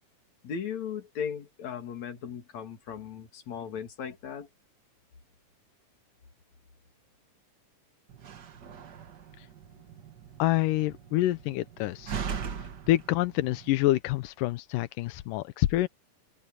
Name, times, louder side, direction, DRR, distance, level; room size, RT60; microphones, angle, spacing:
voice 1, 0.4-4.5, left 7 dB, 60° left, 3.7 m, -37 dB
Slam, 8.1-13.7, right 7 dB, 55° right, 1.2 m, -40 dB
voice 2, 10.4-12.2 12.9-15.9, left 16 dB, 90° left, 2.4 m, -27 dB
open air
omnidirectional pair, 3.7 m